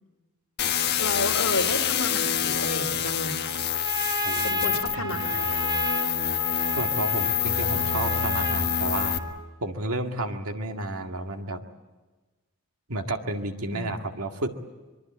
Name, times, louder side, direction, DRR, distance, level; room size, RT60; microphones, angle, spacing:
sound 1, 0.6-9.2, left 10 dB, 50° left, 1.5 m, -26 dB
voice 1, 1.0-3.6 4.4-5.7 13.7-13.9, left 2 dB, 65° left, 4 dB, 2.8 m, -31 dB
Trumpet, 3.5-9.5, right 1 dB, 20° right, 1.6 m, -32 dB
voice 2, 4.2-5.4 6.8-9.2 9.6-11.6 12.9-14.5, right 1 dB, 85° right, 4 dB, 2.0 m, -32 dB
25.0 x 23.0 x 8.8 m, 1.2 s
head